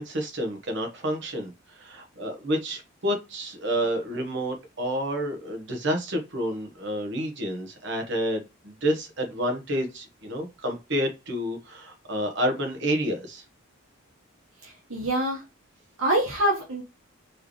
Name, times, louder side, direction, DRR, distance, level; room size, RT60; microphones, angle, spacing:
voice 1, 0.0-13.4, equal, 55° right, 4 dB, 1.3 m, -29 dB
voice 2, 14.6-15.4 16.0-16.8, right 1 dB, 85° right, -2 dB, 1.5 m, -25 dB
4.7 x 3.2 x 3.1 m, 0.25 s
head